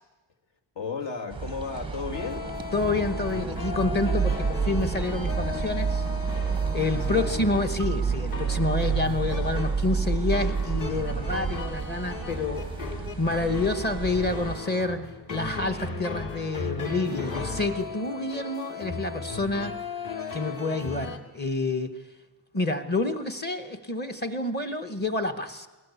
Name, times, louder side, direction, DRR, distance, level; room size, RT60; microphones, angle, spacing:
voice 1, 0.7-2.5 6.9-7.3, left 5 dB, 60° left, 5 dB, 2.5 m, -34 dB
sound 1, 1.3-14.6, right 6 dB, 10° right, 0.7 m, -30 dB
sound 2, 2.1-21.2, left 4 dB, 45° left, 2.3 m, -36 dB
voice 2, 2.7-6.1 6.7-12.6 13.2-19.8 20.3-22.0 22.5-25.7, left 2 dB, 20° left, 7 dB, 1.2 m, -28 dB
20.0 x 19.5 x 8.4 m, 1.2 s
cardioid pair, 175°, 49 cm